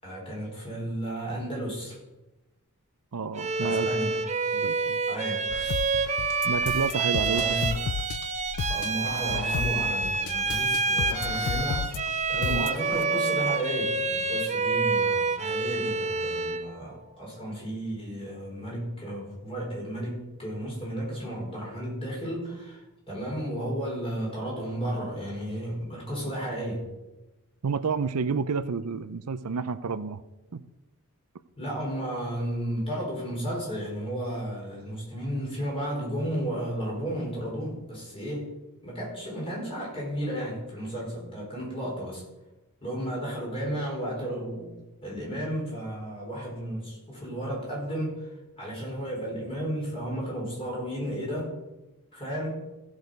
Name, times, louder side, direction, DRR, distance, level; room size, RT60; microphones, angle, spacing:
voice 1, 0.0-2.0 3.6-4.2 5.1-5.5 7.2-7.7 8.7-26.9 31.6-38.5 38.8-42.2 42.8-44.7 45.0-51.5 52.1-52.5, right 1 dB, 25° left, -4 dB, 5.0 m, -33 dB
voice 2, 3.1-3.9 4.5-5.0 6.4-7.4 12.5-12.7 27.6-30.2 30.5-30.6, right 5 dB, 85° right, 14 dB, 0.6 m, -30 dB
Bowed string instrument, 3.3-16.7, right 4 dB, 30° right, 0.8 m, -28 dB
sound 1, 5.5-13.1, left 9 dB, 75° left, 0.3 m, -34 dB
15.0 x 6.4 x 5.2 m, 1.0 s
head